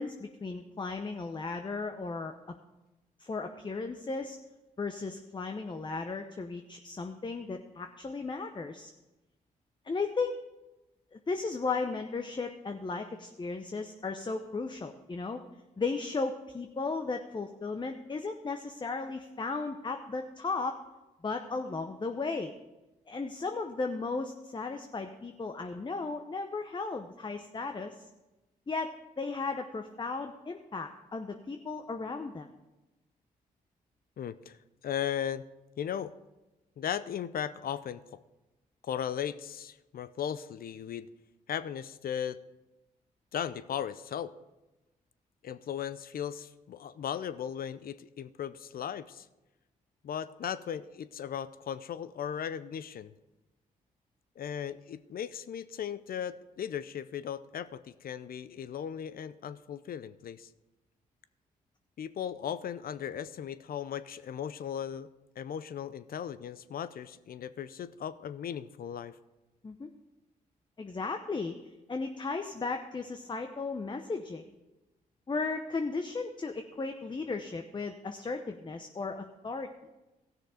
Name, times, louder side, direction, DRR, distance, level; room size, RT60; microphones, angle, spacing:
voice 1, 0.0-2.6 3.2-4.4 4.8-8.9 9.8-10.4 11.1-15.4 15.8-20.8 21.2-22.5 23.1-28.0 28.7-28.9 29.2-32.5 69.6-69.9 70.8-71.6 71.9-74.4 75.3-79.7, left 4 dB, 25° left, 6 dB, 0.8 m, -35 dB
voice 2, 34.2-34.6 34.8-35.4 35.8-36.1 36.8-38.2 38.8-41.1 41.5-42.4 43.3-44.3 45.4-49.3 50.0-53.1 54.4-60.5 62.0-65.1 65.4-69.2, left 9 dB, 60° left, 15 dB, 0.6 m, -37 dB
14.5 x 6.4 x 5.0 m, 1.0 s
supercardioid pair, 50°, 17 cm